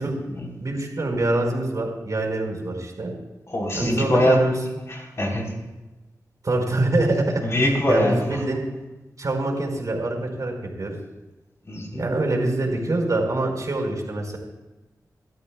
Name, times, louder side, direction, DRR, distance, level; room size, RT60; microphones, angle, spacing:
voice 1, 0.6-3.1 3.7-4.5 6.4-7.4 7.9-8.6 9.2-10.9 11.9-14.4, right 2 dB, 55° right, 2 dB, 4.7 m, -25 dB
voice 2, 3.5-4.5 4.9-5.5 7.4-8.4 11.7-12.0, left 1 dB, 40° left, -1 dB, 4.5 m, -23 dB
29.0 x 13.0 x 2.4 m, 1.1 s
cardioid pair, 65°, 7 cm